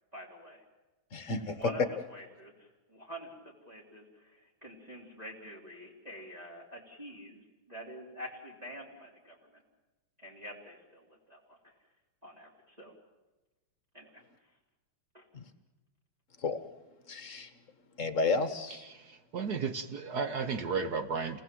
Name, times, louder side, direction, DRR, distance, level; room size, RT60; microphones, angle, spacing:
voice 1, 0.1-0.6 1.5-7.4 7.7-9.6 10.2-11.7 12.2-12.9 13.9-14.2 15.1-15.2, equal, 15° right, -4 dB, 3.4 m, -47 dB
voice 2, 1.1-1.6 15.3-15.4 16.4-16.6 17.1-17.5 18.0-18.8, left 3 dB, 40° left, 10 dB, 1.4 m, -32 dB
voice 3, 18.9-21.4, right 5 dB, 55° right, 8 dB, 1.5 m, -34 dB
28.0 x 19.0 x 7.7 m, 1.1 s
omnidirectional pair, 2.3 m